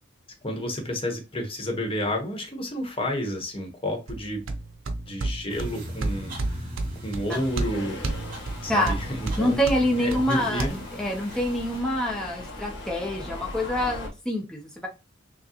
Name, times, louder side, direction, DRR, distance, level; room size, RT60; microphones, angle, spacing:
voice 1, 0.4-4.4 5.0-6.7 7.0-8.0 8.6-9.6 10.0-10.8, left 1 dB, 30° left, 3 dB, 1.0 m, -30 dB
sound 1, 4.1-10.7, right 2 dB, 85° right, 0.6 m, -32 dB
sound 2, 5.5-11.8, equal, 45° right, 2.4 m, -41 dB
Subway metro underground, 7.3-14.1, left 1 dB, 65° left, 1.3 m, -39 dB
voice 2, 9.4-14.9, equal, 5° left, -2 dB, 0.7 m, -26 dB
6.1 x 2.2 x 2.9 m, 0.28 s
head